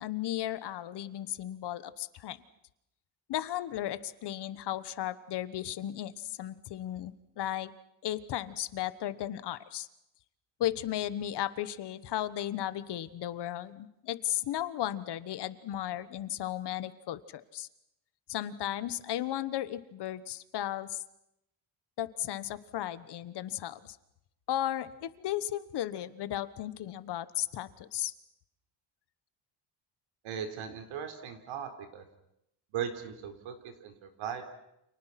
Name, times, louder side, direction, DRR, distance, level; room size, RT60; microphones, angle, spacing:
voice 1, 0.0-2.4 3.3-7.7 8.0-9.9 10.6-17.7 18.3-21.0 22.0-24.0 24.5-28.1, left 12 dB, 55° left, 15 dB, 1.3 m, -35 dB
voice 2, 30.2-32.0 32.7-34.4, right 8 dB, 75° right, 7 dB, 4.2 m, -38 dB
30.0 x 28.5 x 5.9 m, 0.81 s
cardioid pair, 175°, 47 cm